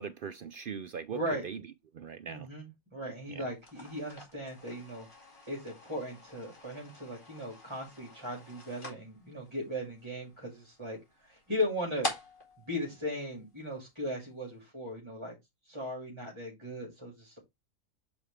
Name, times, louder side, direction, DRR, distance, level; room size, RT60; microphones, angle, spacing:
voice 1, 0.0-1.6 1.9-2.5 3.3-3.5, right 7 dB, 70° right, 0.5 m, -40 dB
voice 2, 1.1-1.4 2.3-5.1 5.5-11.0 11.2-12.1 12.7-15.3 15.6-17.4, left 1 dB, 20° right, 2.2 m, -37 dB
sound 1, 3.5-13.9, left 2 dB, 35° left, 2.6 m, -45 dB
7.2 x 4.9 x 3.2 m
omnidirectional pair, 1.5 m